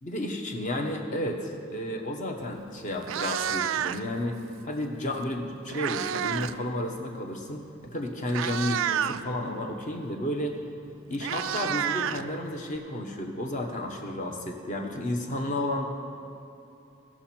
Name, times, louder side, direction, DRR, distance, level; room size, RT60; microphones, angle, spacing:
voice 1, 0.0-10.6 11.1-15.9, left 1 dB, 40° left, 3 dB, 1.0 m, -32 dB
Meow, 2.4-2.6 2.9-4.2 5.3-6.6 6.9-7.2 7.9-8.0 8.3-9.2 10.5-10.6 10.9-12.8, right 9 dB, 65° right, 0.3 m, -30 dB
17.5 x 6.1 x 4.4 m, 2.8 s
head